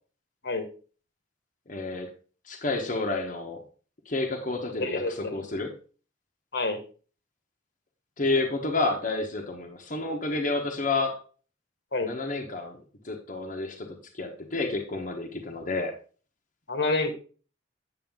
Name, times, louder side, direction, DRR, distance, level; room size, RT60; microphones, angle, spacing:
voice 1, 1.7-2.1 2.5-3.6 4.0-5.7 8.2-11.2 12.0-12.8 13.0-15.9, left 3 dB, 45° left, 1 dB, 1.1 m, -30 dB
voice 2, 4.8-5.4 6.5-6.8 11.9-12.1 16.7-17.1, left 3 dB, 65° left, 7 dB, 1.4 m, -28 dB
8.9 x 6.6 x 3.7 m, 0.38 s
head